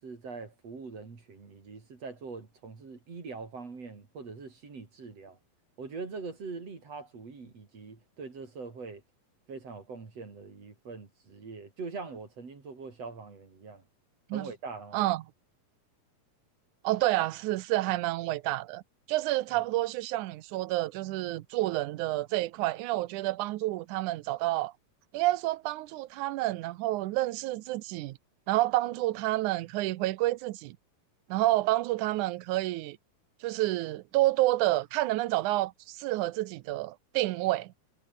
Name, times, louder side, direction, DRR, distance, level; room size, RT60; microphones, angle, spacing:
voice 1, 0.0-5.4 5.8-9.0 9.5-13.8 14.3-15.0, right 4 dB, 45° right, 5.1 m, -43 dB
voice 2, 16.8-18.8 19.1-24.7 25.1-28.2 28.5-30.8 31.3-33.0 33.4-37.7, right 17 dB, 75° right, 1.9 m, -29 dB
omnidirectional pair, 4.2 m